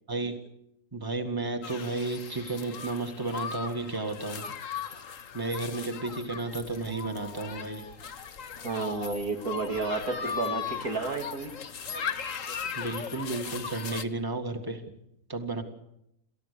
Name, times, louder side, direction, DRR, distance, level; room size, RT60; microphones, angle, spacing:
voice 1, 0.1-0.4 0.9-4.5 5.3-7.9 12.8-14.8 15.3-15.6, right 3 dB, 15° right, 5 dB, 1.9 m, -33 dB
sound 1, 1.6-14.0, left 7 dB, 65° left, 1.5 m, -38 dB
voice 2, 8.6-11.6, right 4 dB, 90° right, 4 dB, 2.6 m, -31 dB
30.0 x 14.5 x 6.8 m, 0.79 s
omnidirectional pair, 1.5 m